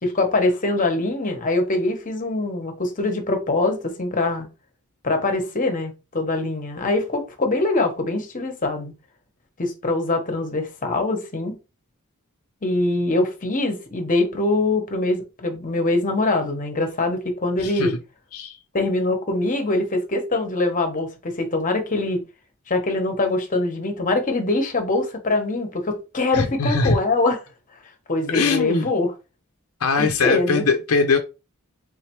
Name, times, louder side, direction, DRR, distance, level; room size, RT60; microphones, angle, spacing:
voice 1, 0.0-4.5 5.0-8.9 9.6-11.6 12.6-17.9 18.7-22.2 22.7-27.4 28.1-29.1 30.0-30.7, left 2 dB, 35° left, 1.0 m, -23 dB
voice 2, 17.6-17.9 18.3-18.6 26.3-27.0 28.3-28.9 29.8-31.2, left 4 dB, 75° left, 0.6 m, -21 dB
3.8 x 3.2 x 3.0 m
head